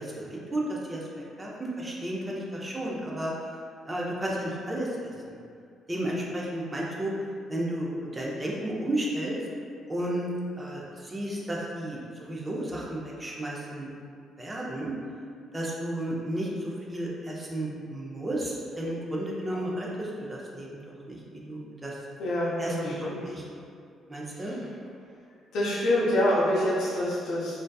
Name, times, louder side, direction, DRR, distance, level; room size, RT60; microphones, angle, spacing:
voice 1, 0.0-3.3 3.9-4.9 5.2-5.4 5.9-7.1 7.5-9.4 9.9-13.9 14.4-15.0 15.5-22.0 22.6-23.4 24.1-24.5, right 1 dB, 15° right, -4 dB, 0.4 m, -33 dB
voice 2, 22.2-23.2 24.3-24.7 25.5-27.5, left 1 dB, 75° left, -8 dB, 0.5 m, -26 dB
2.5 x 2.2 x 2.2 m, 2.3 s
cardioid pair, 145°, 0 cm